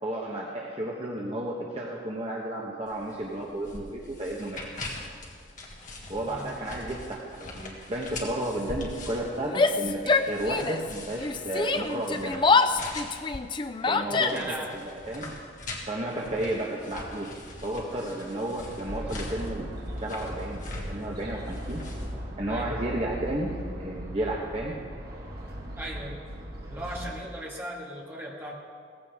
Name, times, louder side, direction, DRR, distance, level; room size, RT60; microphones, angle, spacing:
voice 1, 0.0-4.6 6.1-12.4 13.9-15.3 15.9-17.3 17.6-21.8 22.4-24.8, right 1 dB, 35° right, -2 dB, 1.2 m, -33 dB
sound 1, 2.9-22.1, left 2 dB, 45° left, 2.0 m, -43 dB
voice 2, 6.0-6.7 13.8-14.8 22.5-22.8 25.8-26.2 26.7-28.6, right 1 dB, 10° right, -3 dB, 2.1 m, -38 dB
Yell, 9.4-10.9 11.2-14.6, left 4 dB, 25° left, 0.4 m, -25 dB
sound 2, 18.9-27.2, equal, 55° right, 2.5 m, -38 dB
17.5 x 15.5 x 3.6 m, 2.1 s
head